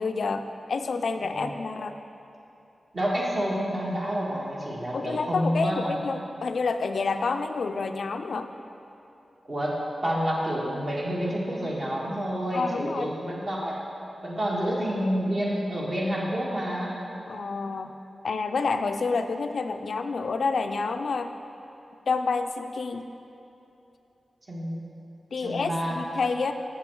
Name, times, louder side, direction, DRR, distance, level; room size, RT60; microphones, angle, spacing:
voice 1, 0.0-2.0 4.9-8.5 12.5-13.1 17.3-17.9 18.2-21.4 22.1-23.1 25.3-26.5, left 4 dB, 75° left, 7 dB, 0.3 m, -28 dB
voice 2, 1.2-1.5 2.9-6.0 9.5-13.8 14.2-17.0 24.5-24.8 25.4-26.0, equal, 45° right, -4 dB, 1.5 m, -29 dB
7.1 x 6.6 x 4.5 m, 2.8 s
cardioid pair, 60°, 0 cm